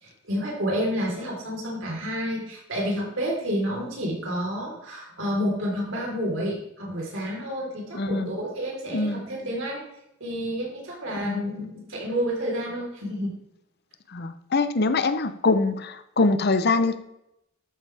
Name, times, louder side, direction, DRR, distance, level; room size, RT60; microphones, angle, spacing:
voice 1, 0.0-9.8 10.2-13.4, equal, 70° right, -1 dB, 4.0 m, -29 dB
voice 2, 7.9-8.3 8.9-9.2 11.2-11.5 14.1-17.0, left 3 dB, 55° left, 11 dB, 0.8 m, -24 dB
12.0 x 9.0 x 3.5 m, 0.83 s
head